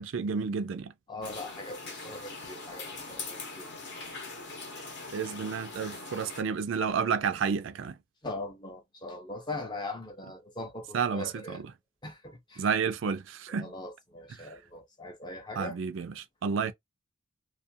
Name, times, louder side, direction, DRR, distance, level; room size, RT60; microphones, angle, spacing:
voice 1, 0.0-0.9 5.1-8.0 10.9-11.6 12.6-13.7 15.6-16.7, right 6 dB, 60° right, 0.4 m, -31 dB
voice 2, 1.1-3.7 4.0-4.2 8.2-11.6 12.0-12.7 13.5-15.8, left 2 dB, 20° left, 0.5 m, -41 dB
sound 1, 1.2-6.4, left 3 dB, 55° left, 0.8 m, -42 dB
2.4 x 2.2 x 2.6 m
head